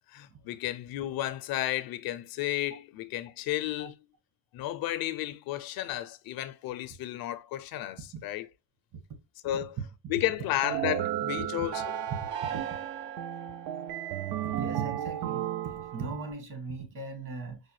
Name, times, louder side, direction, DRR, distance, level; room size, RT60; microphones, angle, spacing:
voice 1, 0.1-4.0 4.5-8.5 9.4-9.8 10.1-11.8, left 14 dB, 60° left, 0.5 m, -33 dB
sound 1, 10.6-16.3, right 11 dB, 70° right, 0.6 m, -34 dB
voice 2, 12.1-12.6 14.4-17.6, right 5 dB, 50° right, 1.6 m, -38 dB
4.6 x 2.1 x 3.1 m
cardioid pair, 110°, 40 cm